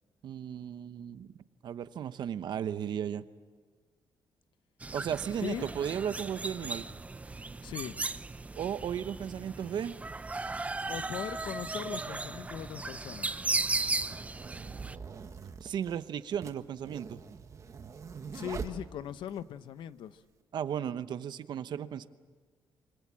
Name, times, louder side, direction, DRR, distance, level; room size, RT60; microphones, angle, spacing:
voice 1, 0.2-1.3 1.6-3.2 4.9-6.8 8.5-9.9 15.6-17.2 20.5-22.1, right 9 dB, 65° right, 0.9 m, -35 dB
sound 1, 4.8-15.0, right 3 dB, 15° right, 0.7 m, -36 dB
voice 2, 5.4-5.7 7.6-8.0 10.9-13.4 18.3-20.2, left 10 dB, 85° left, 0.9 m, -39 dB
sound 2, 13.1-19.4, right 6 dB, 40° right, 1.5 m, -44 dB
26.0 x 25.0 x 7.5 m
cardioid pair, 130°, 8 cm